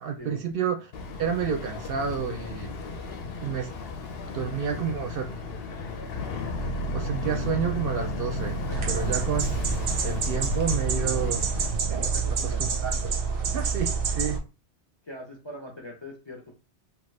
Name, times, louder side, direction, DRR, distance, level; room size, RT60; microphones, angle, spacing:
voice 1, 0.0-0.9 1.2-2.7 3.4-3.7 4.3-5.3 6.3-6.4 6.9-8.6 8.9-9.5 10.0-11.4 12.4-13.1 13.5-14.4, right 7 dB, 60° right, 0.7 m, -30 dB
Boat Water vehicle, 0.9-11.7, left 2 dB, 65° left, 0.7 m, -33 dB
sound 1, 8.7-14.4, right 5 dB, 90° right, 1.0 m, -27 dB
voice 2, 12.0-12.6 15.0-16.5, left 1 dB, 35° left, 0.5 m, -42 dB
3.0 x 2.2 x 3.2 m
omnidirectional pair, 1.2 m